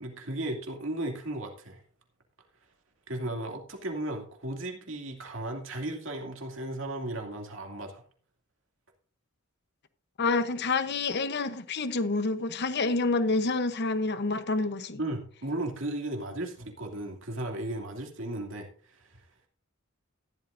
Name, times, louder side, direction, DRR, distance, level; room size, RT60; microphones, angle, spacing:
voice 1, 0.0-1.8 3.1-8.0 15.0-19.2, right 1 dB, 70° right, 2.5 m, -35 dB
voice 2, 10.2-15.0, left 3 dB, 55° left, 0.9 m, -28 dB
14.0 x 12.0 x 2.6 m
head